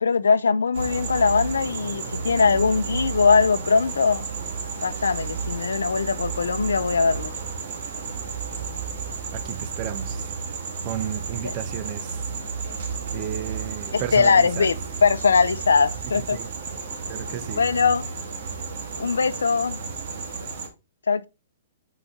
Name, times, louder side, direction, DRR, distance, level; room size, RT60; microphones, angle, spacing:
voice 1, 0.0-4.3 4.8-7.3 13.9-14.8 15.0-16.4 17.6-18.0 19.0-19.8 21.1-21.3, left 5 dB, 85° left, 0.6 m, -21 dB
sound 1, 0.7-20.7, right 5 dB, 60° right, 1.8 m, -32 dB
voice 2, 9.3-10.2 10.8-12.1 13.1-14.7 16.3-16.5 17.1-17.6, right 10 dB, 40° right, 0.8 m, -33 dB
6.2 x 4.9 x 4.3 m
hypercardioid pair, 125°, 0 cm